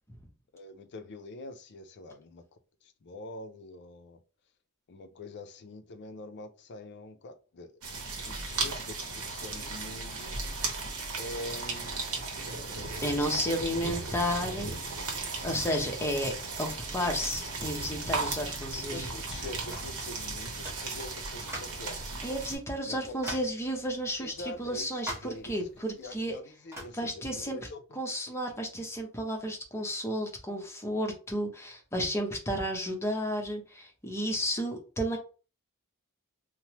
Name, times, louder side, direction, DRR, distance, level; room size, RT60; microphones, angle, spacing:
voice 1, 0.5-4.2 4.9-8.0 8.2-10.4 11.2-12.1 13.7-14.1 18.8-22.0 22.8-23.4 24.2-28.0, left 2 dB, 50° left, 0.5 m, -45 dB
sound 1, 7.8-22.6, right 4 dB, 90° right, 0.9 m, -36 dB
Thunder, 10.8-26.3, equal, 55° right, 0.8 m, -46 dB
voice 2, 13.0-14.7 15.4-19.1 22.2-26.3 27.0-27.6 28.0-35.2, equal, 10° left, 0.7 m, -32 dB
sound 2, 19.7-20.0 20.6-20.9 21.5-21.9 22.5-22.6 23.2-23.6 25.1-25.4 26.7-27.0, right 1 dB, 10° right, 1.0 m, -40 dB
3.1 x 2.0 x 2.8 m
head